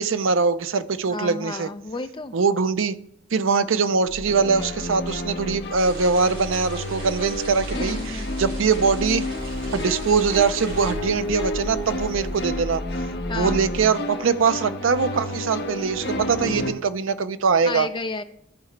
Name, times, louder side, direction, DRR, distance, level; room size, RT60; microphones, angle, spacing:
voice 1, 0.0-1.7 2.3-2.9 3.3-9.2 9.7-12.8 13.3-17.9, right 5 dB, 75° right, 12 dB, 0.5 m, -22 dB
voice 2, 1.1-2.3 7.7-8.3 13.3-13.6 17.6-18.2, left 3 dB, 25° left, 8 dB, 0.6 m, -31 dB
sound 1, 4.1-13.8, left 1 dB, 10° right, 3.6 m, -35 dB
sound 2, 4.3-16.7, left 1 dB, 55° left, 1.4 m, -31 dB
sound 3, 5.7-10.9, right 2 dB, 50° right, 3.8 m, -41 dB
14.0 x 4.8 x 3.2 m, 0.77 s
head